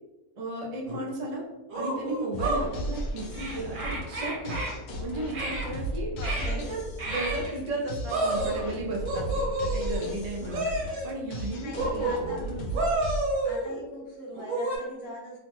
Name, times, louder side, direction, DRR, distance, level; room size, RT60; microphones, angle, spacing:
voice 1, 0.4-1.4 1.7-4.6 5.0-6.1 6.6-9.2 9.7-10.6 11.0-12.8, right 2 dB, 85° right, -2 dB, 0.3 m, -34 dB
sound 1, 0.9-1.0 1.7-2.6 3.3-4.7 5.3-5.7 6.2-6.5 7.0-7.5 8.1-8.7 9.0-10.1 10.5-11.1 11.7-12.4 12.7-13.8 14.3-14.8, right 2 dB, 60° right, 1.2 m, -30 dB
sound 2, 2.3-13.2, right 1 dB, 75° left, 1.1 m, -35 dB
voice 2, 6.1-6.7 11.6-12.5 13.4-15.4, left 1 dB, 50° left, -3 dB, 0.9 m, -41 dB
2.9 x 2.1 x 3.0 m, 1.1 s
omnidirectional pair, 1.7 m